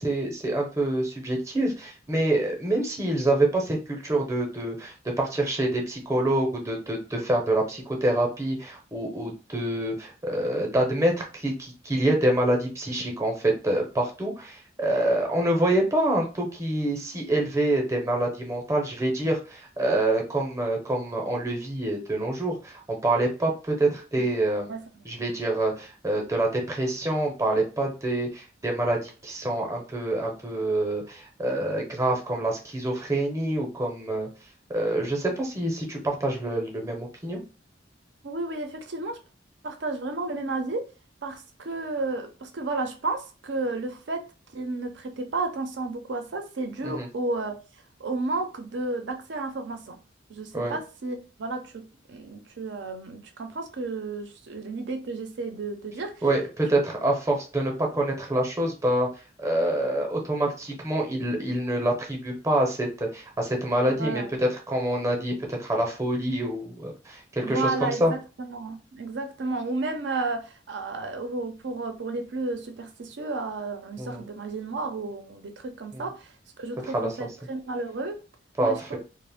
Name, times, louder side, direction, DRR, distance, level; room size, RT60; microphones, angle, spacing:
voice 1, 0.0-24.7 25.0-34.3 34.7-37.4 46.8-47.1 50.5-50.8 56.2-59.1 59.4-68.1 74.0-74.2 75.9-76.0 76.8-77.1 78.6-79.0, right 1 dB, 15° right, 0.6 m, -26 dB
voice 2, 38.2-39.2 39.6-40.9 41.2-47.6 48.0-50.0 50.3-56.2 63.9-64.4 67.4-78.2 78.6-79.0, right 3 dB, 65° right, 0.5 m, -32 dB
2.4 x 2.0 x 3.4 m
head